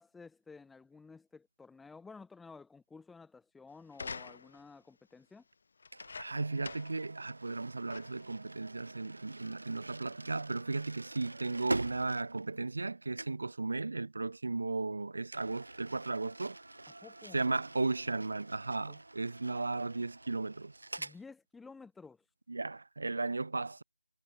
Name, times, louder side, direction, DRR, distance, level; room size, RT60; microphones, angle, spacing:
voice 1, 0.0-5.4 17.0-17.5 18.9-19.0 21.0-22.2, left 4 dB, ahead, 1.4 m, -53 dB
sound 1, 3.9-4.7 5.8-7.1 7.4-7.5 7.9-8.3 9.1-9.2, left 4 dB, 40° left, 3.9 m, -46 dB
sound 2, 5.9-12.9 13.1-13.5 15.3-21.2, right 2 dB, 75° right, 4.8 m, -45 dB
voice 2, 6.2-16.6 17.3-20.7 22.5-23.8, right 3 dB, 55° right, 3.1 m, -35 dB
figure-of-eight pair, 170°, 0 cm